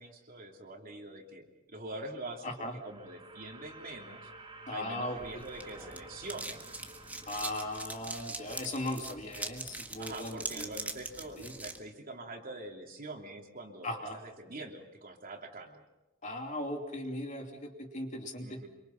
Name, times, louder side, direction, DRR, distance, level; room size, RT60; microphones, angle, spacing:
voice 1, 0.0-4.3 4.7-6.7 10.0-15.8 18.4-18.7, right 2 dB, 45° right, 2 dB, 3.0 m, -44 dB
sound 1, 2.1-9.2, right 2 dB, 25° right, 4.1 m, -53 dB
voice 2, 2.4-2.8 4.7-5.4 7.3-10.8 11.4-11.5 13.8-14.2 16.2-18.6, left 1 dB, 35° left, 3 dB, 2.8 m, -38 dB
sound 2, 5.2-11.8, right 2 dB, 10° right, 1.7 m, -42 dB
26.5 x 24.5 x 5.9 m, 0.97 s
head